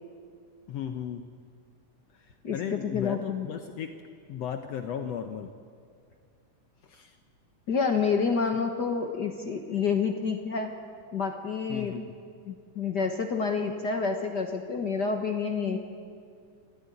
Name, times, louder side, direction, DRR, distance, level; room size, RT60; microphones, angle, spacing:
voice 1, 0.7-1.3 2.5-4.0 4.3-5.5 6.9-7.1 11.7-12.0, left 8 dB, 70° left, 7 dB, 1.8 m, -35 dB
voice 2, 2.4-3.5 7.7-10.7 11.1-12.0 12.5-15.8, left 5 dB, 50° left, 4 dB, 1.3 m, -28 dB
26.0 x 14.0 x 9.9 m, 2.2 s
omnidirectional pair, 3.4 m